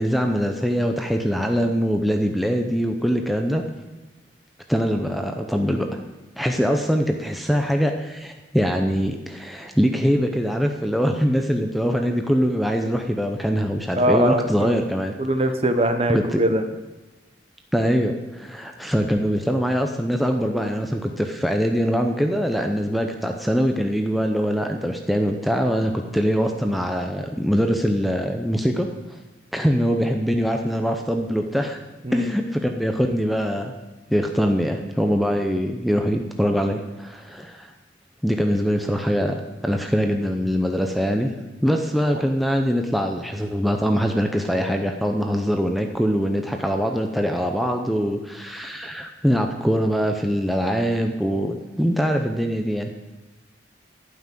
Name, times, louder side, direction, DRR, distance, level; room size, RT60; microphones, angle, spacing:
voice 1, 0.0-3.6 4.7-5.9 6.4-15.1 16.1-16.5 17.7-28.9 29.5-31.8 32.1-33.7 34.1-37.7 38.2-39.3 39.6-41.3 41.6-52.9, equal, ahead, 3 dB, 0.7 m, -23 dB
voice 2, 14.0-14.8 15.2-16.6 32.0-32.3, right 1 dB, 30° right, 7 dB, 0.9 m, -22 dB
11.5 x 5.9 x 9.1 m, 1.2 s
head